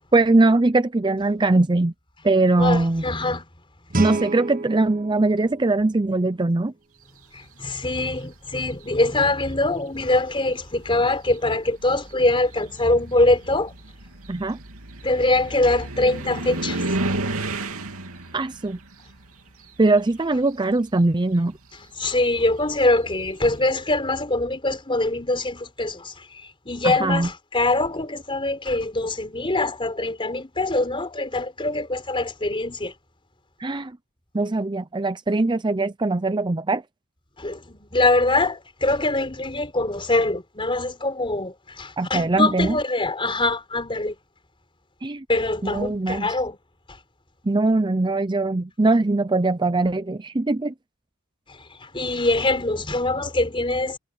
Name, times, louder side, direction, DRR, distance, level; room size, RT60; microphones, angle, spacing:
voice 1, 0.1-1.9 2.2-3.0 4.0-6.7 14.3-14.6 18.3-18.8 19.8-21.6 26.8-27.3 33.6-34.0 34.3-36.8 42.0-42.8 45.0-45.2 45.6-46.4 47.4-50.7, right 2 dB, 20° right, 0.6 m, -21 dB
voice 2, 2.6-3.5 7.3-13.7 15.0-16.8 22.0-32.9 37.4-44.1 45.3-46.6 51.5-54.0, left 2 dB, 25° left, 4.3 m, -23 dB
Guitar, 3.9-6.7, right 2 dB, 40° right, 1.5 m, -31 dB
sound 1, 8.3-8.9 9.9-10.0 10.5-20.4 20.7-23.3, right 2 dB, 75° right, 3.0 m, -33 dB
head